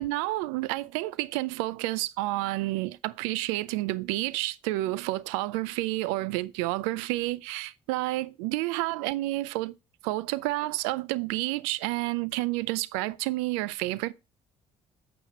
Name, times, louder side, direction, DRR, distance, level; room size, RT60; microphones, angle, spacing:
voice 1, 0.0-9.7 10.0-14.1, right 18 dB, 90° right, 0.4 m, -30 dB
9.1 x 6.2 x 2.9 m
supercardioid pair, 65°, 15 cm